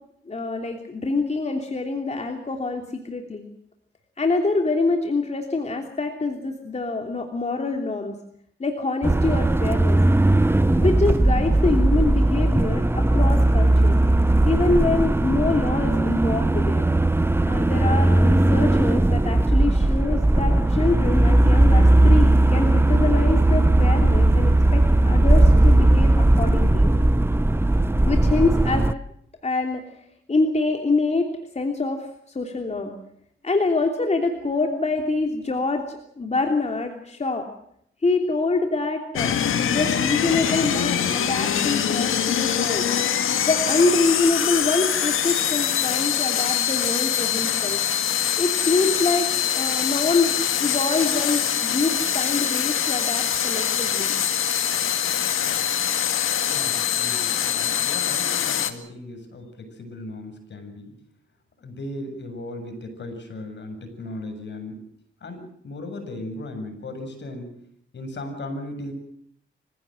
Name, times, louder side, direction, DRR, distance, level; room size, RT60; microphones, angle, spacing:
voice 1, 0.3-3.4 4.2-8.2 8.6-10.0 10.8-14.0 14.4-16.9 17.4-26.9 28.0-28.9 29.4-29.8 30.3-31.3 31.5-32.1 32.3-32.9 33.4-37.5 38.0-42.9 43.4-47.8 48.4-54.2, left 3 dB, 35° left, 3 dB, 3.1 m, -25 dB
sound 1, 9.0-28.9, right 1 dB, 10° right, 0.8 m, -18 dB
sound 2, 39.2-58.7, left 9 dB, 85° left, 1.9 m, -24 dB
voice 2, 56.5-60.9 61.6-64.8 65.2-67.5 67.9-68.9, left 1 dB, 60° left, 6 dB, 7.3 m, -36 dB
26.5 x 16.0 x 7.8 m, 0.71 s
cardioid pair, 80°, 21 cm